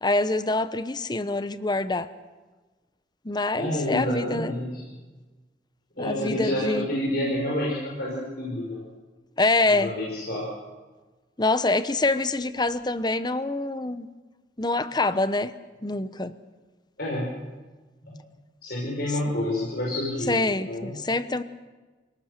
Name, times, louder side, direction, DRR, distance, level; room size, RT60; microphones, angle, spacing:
voice 1, 0.0-2.1 3.2-4.5 6.0-6.9 9.4-9.9 11.4-14.1 14.6-15.5 15.8-16.3 20.3-21.4, left 2 dB, 20° left, 13 dB, 0.9 m, -25 dB
voice 2, 3.5-5.0 6.0-8.8 9.7-10.5 17.0-17.3 18.0-18.1 18.6-20.9, left 1 dB, 55° left, -4 dB, 5.7 m, -29 dB
28.0 x 18.5 x 6.7 m, 1.3 s
head